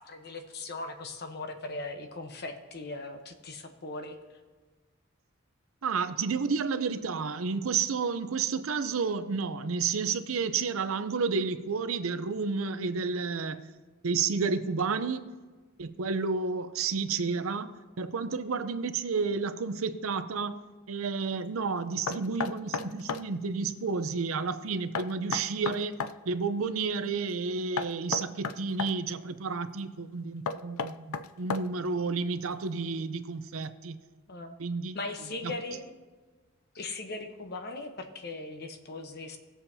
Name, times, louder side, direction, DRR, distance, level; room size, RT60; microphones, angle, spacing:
voice 1, 0.0-4.2 34.3-34.6 34.9-35.9 36.7-39.4, left 2 dB, 50° left, 0.9 m, -39 dB
voice 2, 5.8-13.7 14.0-15.3 15.8-26.0 26.3-31.1 31.4-34.0 34.6-35.0 35.4-35.5, right 5 dB, 75° right, 0.6 m, -31 dB
Knock, 22.1-23.3 25.0-26.2 27.8-29.0 30.5-31.9, left 5 dB, 85° left, 0.4 m, -33 dB
19.5 x 7.2 x 2.7 m
head